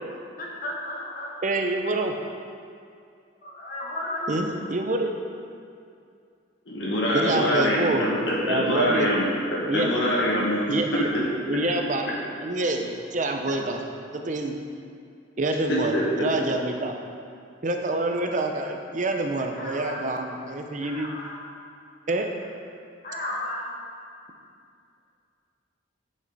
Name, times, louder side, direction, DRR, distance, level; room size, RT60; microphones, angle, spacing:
voice 1, 0.4-1.3 3.4-4.4 19.4-20.1 20.8-21.4 23.0-23.7, left 1 dB, 45° left, -4 dB, 1.4 m, -34 dB
voice 2, 1.4-2.1 4.3-5.1 7.1-8.0 8.4-9.1 9.7-9.9 10.7-11.1 11.5-12.1 12.4-13.8 14.1-14.6 15.4-16.9 17.6-21.1 22.1-22.3, right 2 dB, 40° right, 4 dB, 0.6 m, -26 dB
voice 3, 6.7-9.2 9.5-10.7 11.0-11.1 15.7-16.0, equal, 65° left, -5 dB, 1.8 m, -24 dB
9.8 x 5.3 x 4.0 m, 2.4 s
head